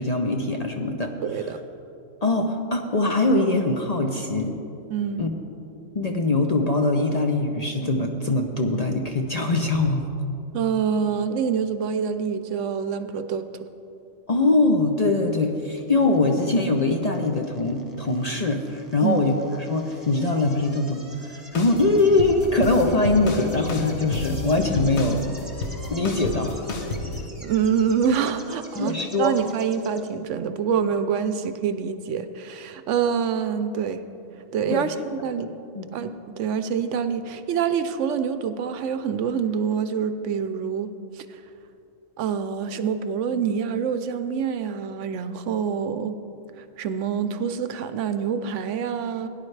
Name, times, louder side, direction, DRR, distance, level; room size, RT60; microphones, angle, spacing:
voice 1, 0.0-1.1 2.2-4.5 5.2-5.3 5.9-10.1 14.3-25.2 25.9-26.7 28.8-29.4 34.7-34.9 35.8-35.9, left 2 dB, 40° left, 2 dB, 0.6 m, -22 dB
voice 2, 1.2-1.6 4.9-5.2 10.5-13.5 19.0-19.2 27.4-34.1 34.5-35.6 35.9-40.9 41.2-41.4 42.2-46.1 46.8-49.3, right 7 dB, 75° right, 10 dB, 0.9 m, -26 dB
sound 1, 15.8-30.1, right 1 dB, 15° right, 1.3 m, -47 dB
sound 2, 21.5-27.3, left 3 dB, 65° left, 1.2 m, -32 dB
17.5 x 10.0 x 3.3 m, 2.8 s
omnidirectional pair, 1.3 m